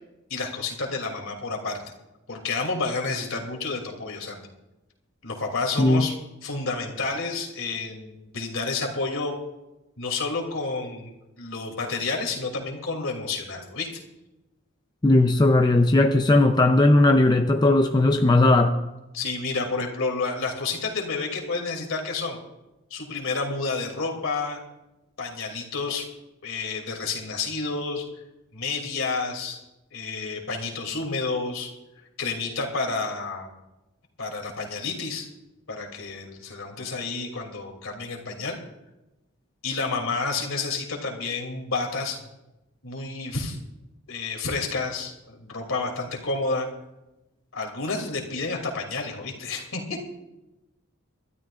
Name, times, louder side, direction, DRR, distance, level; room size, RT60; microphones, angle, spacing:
voice 1, 0.3-1.8 2.3-4.4 5.2-6.1 6.4-9.4 10.0-11.1 11.4-13.9 19.1-22.4 22.9-24.6 25.2-26.1 26.4-28.1 28.5-29.6 29.9-31.7 32.2-33.5 34.2-35.3 35.7-38.6 39.6-42.2 42.8-43.6 44.1-46.7 47.5-50.0, left 3 dB, 65° left, 2 dB, 2.8 m, -30 dB
voice 2, 15.0-18.8, left 2 dB, 20° left, 5 dB, 0.5 m, -18 dB
24.5 x 13.0 x 2.5 m, 0.98 s
head